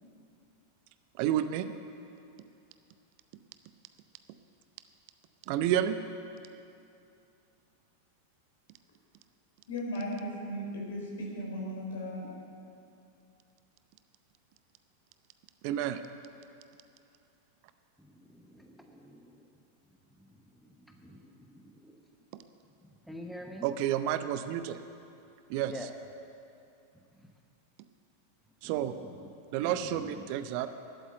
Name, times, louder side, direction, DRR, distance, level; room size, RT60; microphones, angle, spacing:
voice 1, 1.2-1.7 5.5-6.0 15.6-16.0 23.6-24.8 25.5-25.7 28.6-28.9 29.5-30.7, right 11 dB, 45° right, 0.6 m, -30 dB
voice 2, 9.7-12.3, equal, 65° left, 3.6 m, -36 dB
voice 3, 18.0-19.6 20.1-22.2 22.8-23.7 25.5-25.9 26.9-27.3 28.6-29.3 29.6-30.3, equal, ahead, 1.0 m, -49 dB
11.5 x 8.5 x 9.8 m
figure-of-eight pair, 90°, 0 cm